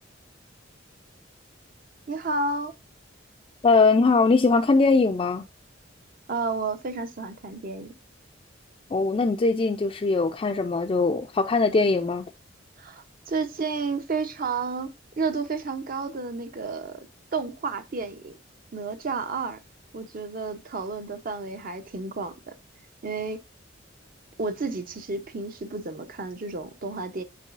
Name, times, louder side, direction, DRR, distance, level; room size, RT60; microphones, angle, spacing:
voice 1, 2.1-2.7 6.3-7.9 12.8-14.9 15.2-17.0 17.3-18.3 18.7-19.6 19.9-22.5 23.0-23.4 24.4-27.2, right 4 dB, 50° right, 0.7 m, -31 dB
voice 2, 3.6-5.4 8.9-12.3, left 3 dB, 30° left, 0.3 m, -21 dB
8.2 x 4.7 x 2.5 m
head